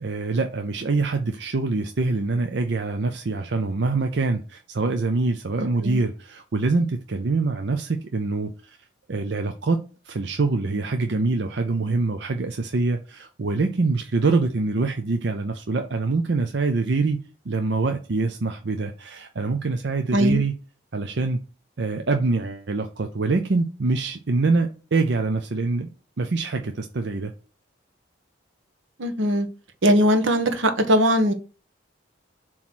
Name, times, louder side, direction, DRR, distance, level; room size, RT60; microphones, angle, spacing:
voice 1, 0.0-8.5 9.1-9.8 10.0-20.5 20.9-21.4 21.8-25.9 26.2-27.3, right 3 dB, 60° right, 0.6 m, -24 dB
voice 2, 5.6-6.0 20.1-20.4 29.0-29.5 29.8-31.3, equal, 80° right, 1.2 m, -20 dB
7.2 x 3.1 x 6.1 m
head